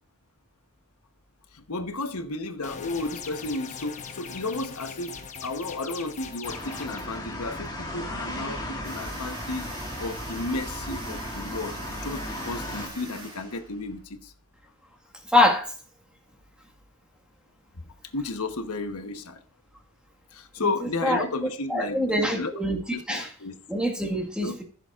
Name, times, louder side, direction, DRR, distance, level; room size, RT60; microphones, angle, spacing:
voice 1, 1.5-9.7 10.0-14.3 17.8-17.9 18.1-19.4 20.3-22.5 22.9-23.6 24.4-24.5, left 3 dB, 75° left, 1.1 m, -33 dB
sound 1, 2.6-7.0, left 6 dB, 35° left, 1.0 m, -40 dB
sound 2, 6.4-12.9, left 1 dB, 20° left, 1.8 m, -36 dB
sound 3, 8.8-14.0, right 2 dB, 20° right, 2.4 m, -42 dB
voice 2, 15.3-15.7 20.6-20.7 21.0-21.2 21.7-22.8 23.1-23.3 23.7-24.6, left 1 dB, 5° right, 1.6 m, -24 dB
15.0 x 7.0 x 2.5 m
head